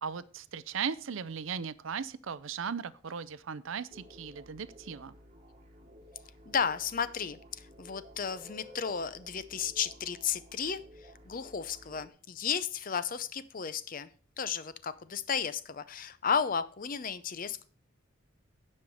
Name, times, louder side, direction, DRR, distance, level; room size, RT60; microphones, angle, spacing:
voice 1, 0.0-5.2, right 6 dB, 65° right, 17 dB, 0.5 m, -37 dB
sound 1, 3.9-12.1, equal, 30° right, 1.3 m, -54 dB
voice 2, 6.5-14.1 14.4-17.6, left 7 dB, 40° left, 14 dB, 0.6 m, -33 dB
9.7 x 5.5 x 6.3 m, 0.41 s
head